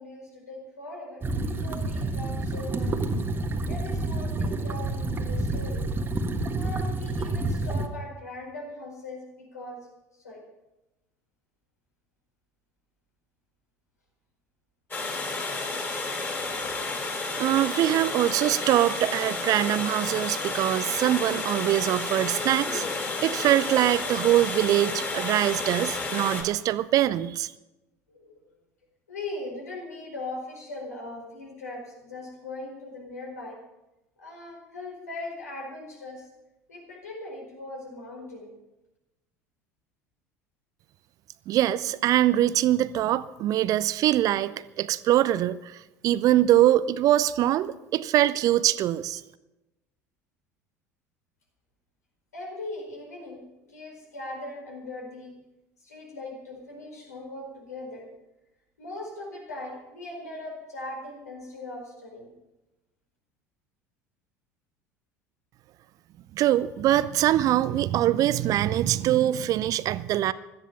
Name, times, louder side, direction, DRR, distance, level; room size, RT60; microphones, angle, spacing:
voice 1, 0.0-2.9 3.7-5.8 6.5-9.9 10.1-10.4 28.1-28.5 29.1-33.6 34.2-36.3 36.7-38.5 52.3-53.4 53.7-55.3 55.8-58.1 58.8-62.3, left 2 dB, 75° left, 0 dB, 4.7 m, -40 dB
sound 1, 1.2-7.9, right 2 dB, 25° right, 1.5 m, -29 dB
Water, 14.9-26.4, left 3 dB, 25° left, 3.9 m, -31 dB
voice 2, 17.4-22.9 23.2-27.5 41.5-44.5 44.8-49.2 66.3-70.3, right 13 dB, 40° right, 16 dB, 0.6 m, -23 dB
17.5 x 13.0 x 5.7 m, 0.96 s
figure-of-eight pair, 70°, 9 cm